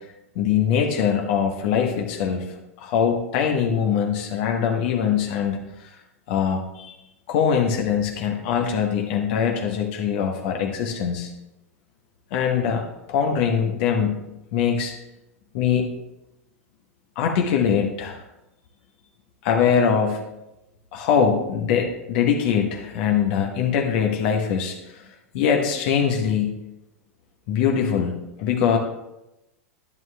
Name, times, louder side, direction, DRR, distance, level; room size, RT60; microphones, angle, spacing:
voice 1, 0.3-5.9 6.3-6.9 7.3-11.3 12.3-14.2 14.5-14.9 15.5-15.8 17.2-18.2 19.4-20.2 20.9-26.6 27.5-28.8, left 7 dB, 50° left, 3 dB, 1.0 m, -22 dB
11.0 x 10.5 x 2.2 m, 0.93 s
figure-of-eight pair, 95°, 8 cm